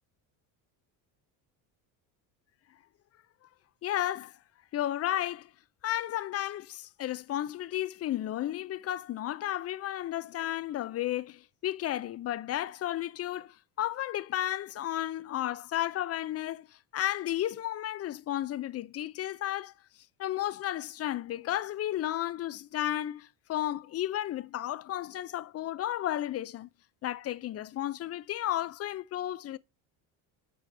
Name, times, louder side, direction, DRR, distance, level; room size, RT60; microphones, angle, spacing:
voice 1, 3.8-4.4 4.7-5.5 5.8-19.7 20.2-26.7 27.0-29.6, left 13 dB, 35° left, 0.4 m, -33 dB
7.8 x 5.0 x 3.3 m
supercardioid pair, 85°, 48 cm